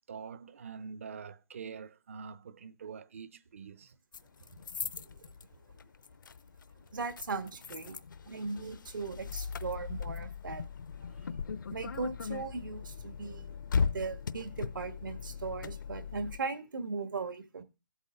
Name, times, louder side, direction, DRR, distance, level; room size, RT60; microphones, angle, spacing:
voice 1, 0.0-3.9 7.9-8.0 11.0-11.3 13.2-13.5 13.8-13.9, right 6 dB, 40° right, 0.6 m, -46 dB
sound 1, 4.1-16.4, left 5 dB, 75° left, 0.6 m, -38 dB
voice 2, 4.8-5.3 6.9-8.0 8.3-10.6 11.7-13.5 13.9-17.6, right 4 dB, 75° right, 1.7 m, -38 dB
14.0 x 8.1 x 3.7 m
hypercardioid pair, 170°, 11 cm